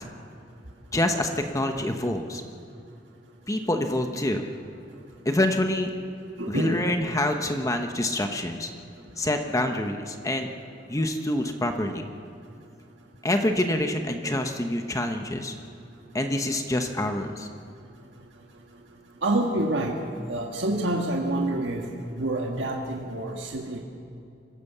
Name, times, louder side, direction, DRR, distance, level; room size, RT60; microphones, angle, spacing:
voice 1, 0.9-2.4 3.5-4.5 5.2-5.9 6.5-8.7 9.2-10.5 10.9-12.0 13.2-15.5 16.1-17.5, left 1 dB, 20° left, 5 dB, 1.0 m, -26 dB
voice 2, 6.4-6.8 19.2-20.0 20.3-23.8, right 1 dB, 85° right, 1 dB, 1.7 m, -27 dB
25.5 x 16.0 x 6.8 m, 2.6 s
head